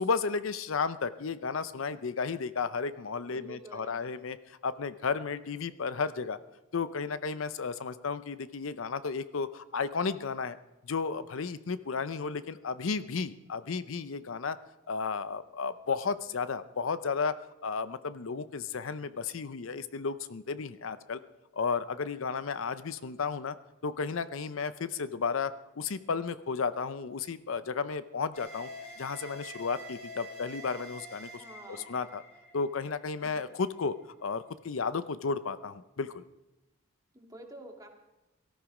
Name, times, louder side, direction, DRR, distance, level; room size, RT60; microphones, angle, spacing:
voice 1, 0.0-6.4 6.7-10.6 10.8-14.6 14.9-21.2 21.5-23.6 23.8-28.7 29.0-32.2 32.5-33.9 34.2-36.2, left 5 dB, 70° left, 14 dB, 0.6 m, -33 dB
voice 2, 3.2-4.0 31.4-31.9 37.1-37.9, right 1 dB, 15° right, 2 dB, 2.2 m, -48 dB
sound 1, 28.3-33.7, equal, 30° left, 2.9 m, -47 dB
18.0 x 13.5 x 4.9 m, 1.0 s
head